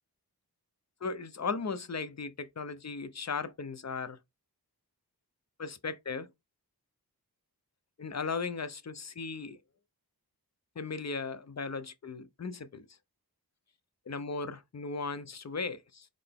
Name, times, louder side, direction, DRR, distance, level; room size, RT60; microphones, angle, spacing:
voice 1, 1.0-4.2 5.6-6.3 8.0-9.6 10.8-12.9 14.1-16.1, left 4 dB, 45° left, 0.6 m, -37 dB
3.9 x 3.3 x 3.5 m
wide cardioid pair, 50°, 39 cm